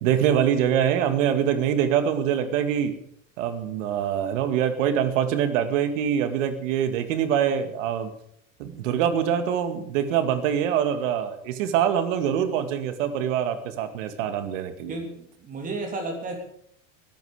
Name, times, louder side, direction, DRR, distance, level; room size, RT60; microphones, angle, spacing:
voice 1, 0.0-2.9 3.4-8.1 8.6-15.0, right 9 dB, 75° right, 9 dB, 2.2 m, -24 dB
voice 2, 14.9-16.4, right 2 dB, 20° right, 3 dB, 3.0 m, -32 dB
21.0 x 12.0 x 5.0 m, 0.68 s
cardioid pair, 180°, 38 cm